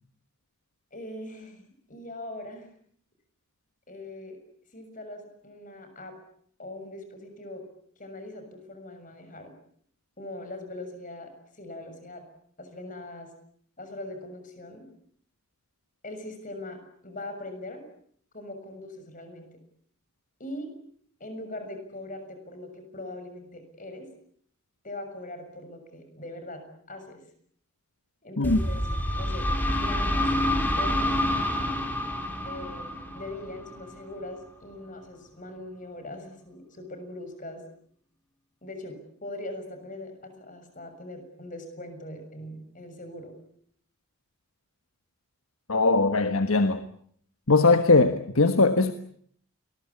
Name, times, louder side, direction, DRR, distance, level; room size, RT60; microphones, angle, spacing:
voice 1, 0.9-2.7 3.9-4.4 4.7-6.1 6.6-7.6 8.0-9.5 10.2-12.2 12.6-13.3 13.8-14.9 16.0-17.8 18.3-19.6 20.4-20.7 21.2-24.1 24.8-27.2 28.2-28.8 29.1-29.5 29.8-30.3 30.8-31.2 32.4-37.6 38.6-43.3, left 1 dB, 40° left, 8 dB, 6.7 m, -41 dB
sound 1, 28.4-34.1, left 1 dB, 10° left, 4.2 m, -27 dB
voice 2, 45.7-46.8 47.5-48.9, left 3 dB, 85° left, 9 dB, 1.4 m, -20 dB
29.0 x 21.5 x 8.6 m, 0.63 s
head